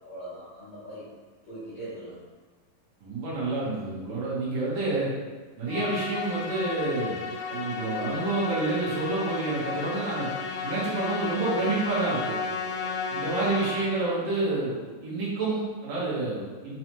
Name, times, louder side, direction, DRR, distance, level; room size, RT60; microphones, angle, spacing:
voice 1, 0.0-1.0 1.5-2.2 12.5-12.9, right 1 dB, 65° left, -13 dB, 1.3 m, -41 dB
voice 2, 3.0-5.1 5.6-10.3 10.6-12.4 13.1-16.8, right 2 dB, 60° right, -8 dB, 1.7 m, -29 dB
Musical instrument, 5.7-14.2, left 4 dB, 85° left, 2.3 m, -33 dB
5.4 x 2.4 x 3.0 m, 1.4 s
omnidirectional pair, 4.0 m